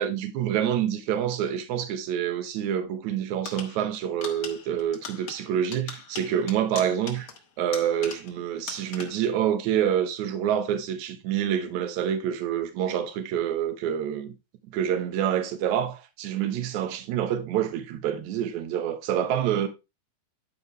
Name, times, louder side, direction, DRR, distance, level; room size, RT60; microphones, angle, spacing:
voice 1, 0.0-7.3 7.6-14.4 14.7-19.7, right 9 dB, 70° right, 1.9 m, -27 dB
sound 1, 3.4-8.4 8.7-9.3, left 6 dB, 70° left, 1.2 m, -41 dB
10.5 x 4.9 x 3.2 m
omnidirectional pair, 4.5 m